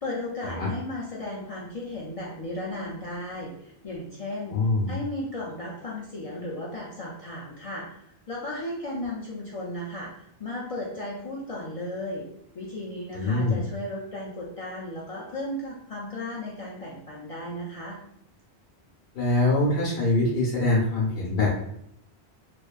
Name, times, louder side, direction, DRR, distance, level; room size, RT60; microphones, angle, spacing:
voice 1, 0.0-4.6 4.9-12.3 12.5-18.0, left 1 dB, 60° left, -5 dB, 0.3 m, -35 dB
voice 2, 4.5-4.9 13.1-13.6 19.1-21.6, left 2 dB, 75° left, -5 dB, 0.9 m, -24 dB
2.5 x 2.2 x 2.3 m, 0.75 s
omnidirectional pair, 1.1 m